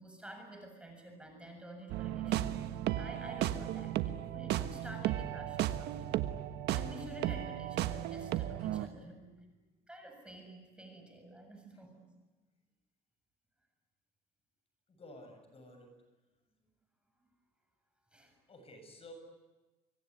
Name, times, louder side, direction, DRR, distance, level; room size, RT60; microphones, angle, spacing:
voice 1, 0.0-2.7 3.0-6.2 6.7-9.3 9.9-12.0 18.1-18.4, right 1 dB, 5° right, 4 dB, 7.3 m, -50 dB
sound 1, 1.9-8.9, right 13 dB, 85° right, 1.4 m, -35 dB
voice 2, 14.9-15.9 18.5-19.1, left 1 dB, 35° left, 5 dB, 7.3 m, -53 dB
25.5 x 23.5 x 9.7 m, 1.1 s
cardioid pair, 110°, 17 cm